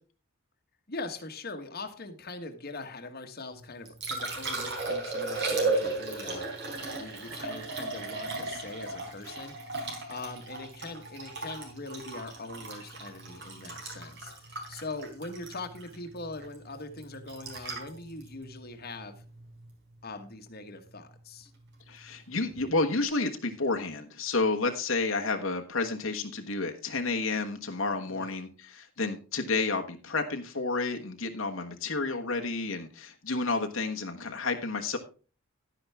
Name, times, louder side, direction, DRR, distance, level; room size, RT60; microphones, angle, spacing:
voice 1, 0.9-9.5 10.1-19.2 20.0-21.5 28.0-28.3, left 2 dB, 45° left, 5 dB, 1.4 m, -42 dB
Liquid, 3.6-19.7 22.5-22.6, right 3 dB, 55° right, 4.3 m, -35 dB
voice 2, 21.9-35.0, left 3 dB, 70° left, 4 dB, 1.3 m, -30 dB
11.5 x 10.0 x 3.5 m, 0.35 s
head